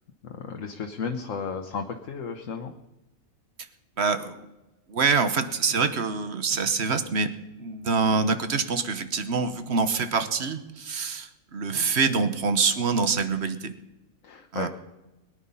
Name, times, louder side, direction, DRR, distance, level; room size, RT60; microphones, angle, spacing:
voice 1, 0.2-2.7 14.2-14.7, left 5 dB, 70° left, 3 dB, 1.3 m, -33 dB
voice 2, 4.0-4.4 4.9-7.3 7.6-13.7 14.5-14.7, right 4 dB, 55° right, 10 dB, 1.2 m, -25 dB
22.0 x 9.7 x 5.5 m, 1.0 s
omnidirectional pair, 1.4 m